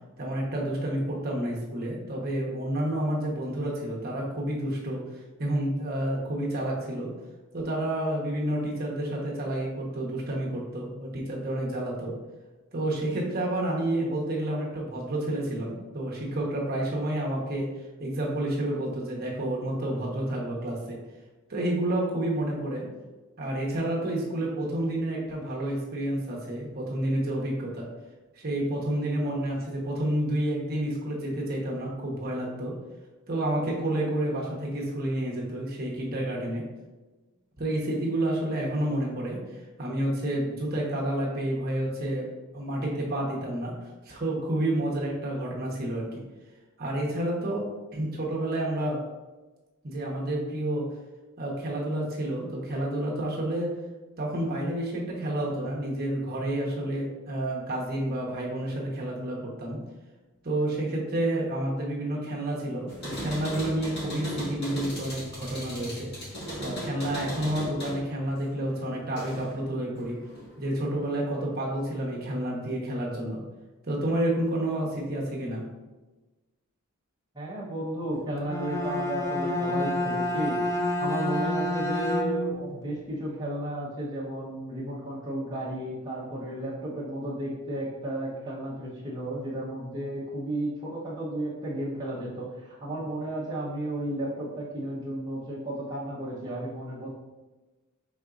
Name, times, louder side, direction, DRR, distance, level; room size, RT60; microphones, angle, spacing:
voice 1, 0.2-5.0 5.4-7.1 7.5-12.1 12.7-17.7 18.0-21.0 21.5-22.9 23.4-27.9 28.4-32.7 33.3-36.6 37.6-42.3 42.5-43.7 44.0-46.2 46.8-47.6 47.9-49.0 49.8-50.9 51.4-53.7 54.2-59.8 60.4-66.1 66.6-70.2 70.6-73.4 73.9-75.6, right 1 dB, 45° right, -4 dB, 0.9 m, -29 dB
sound 1, 62.9-69.6 70.0-70.8, equal, 50° left, 1.5 m, -37 dB
voice 2, 77.3-97.1, right 1 dB, 20° right, -8 dB, 0.8 m, -33 dB
Bowed string instrument, 78.4-82.7, left 1 dB, 15° left, 0.3 m, -28 dB
5.3 x 3.8 x 2.4 m, 1.2 s
head